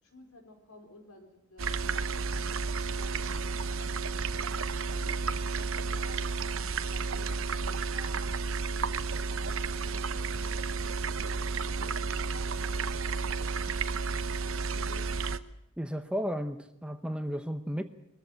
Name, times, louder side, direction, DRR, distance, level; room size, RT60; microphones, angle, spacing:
voice 1, 0.0-2.7 3.0-8.2 8.8-13.5 14.3-15.1, left 1 dB, 75° left, 4 dB, 4.5 m, -53 dB
sound 1, 1.6-15.4, right 4 dB, 65° right, 0.8 m, -32 dB
voice 2, 15.8-17.8, equal, 5° right, 8 dB, 0.8 m, -33 dB
21.5 x 14.5 x 9.9 m, 0.82 s
head